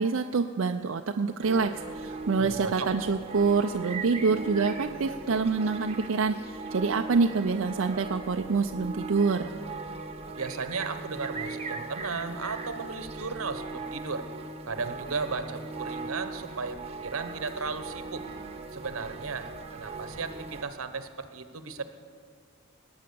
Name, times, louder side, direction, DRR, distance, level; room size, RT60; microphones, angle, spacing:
voice 1, 0.0-9.5, right 4 dB, 70° right, 5 dB, 0.5 m, -26 dB
sound 1, 1.4-20.6, right 3 dB, 30° right, 0.9 m, -39 dB
voice 2, 2.4-2.9 10.4-14.3 14.7-18.2 18.7-21.8, right 4 dB, 85° right, 9 dB, 1.1 m, -35 dB
19.5 x 8.8 x 7.0 m, 2.1 s
head